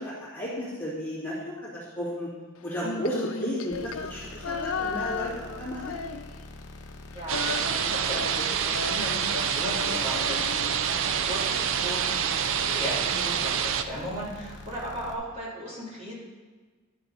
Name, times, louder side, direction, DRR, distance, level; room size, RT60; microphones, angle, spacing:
voice 1, 0.0-2.3 2.6-6.0, equal, 10° left, -9 dB, 2.5 m, -33 dB
Female singing, 2.7-6.6 6.9-11.2, left 5 dB, 80° left, 0.5 m, -36 dB
sound 1, 3.7-15.1, left 2 dB, 55° left, 1.0 m, -45 dB
voice 2, 7.1-16.1, equal, 35° right, -8 dB, 3.0 m, -36 dB
sound 2, 7.3-13.8, right 8 dB, 65° right, 0.5 m, -27 dB
11.5 x 6.7 x 4.1 m, 1.4 s
head